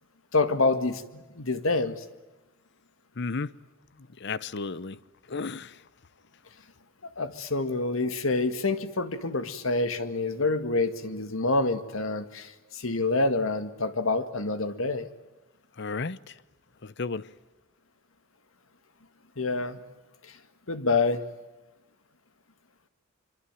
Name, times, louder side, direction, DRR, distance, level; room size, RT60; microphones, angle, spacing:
voice 1, 0.3-2.0 7.2-15.1 19.4-19.8 20.2-20.4 20.7-21.2, left 3 dB, 80° left, 1.9 m, -27 dB
voice 2, 3.2-3.5 4.2-5.0 5.3-5.8 15.8-16.3 16.8-17.3, left 4 dB, 60° left, 0.8 m, -33 dB
26.0 x 24.0 x 9.1 m
head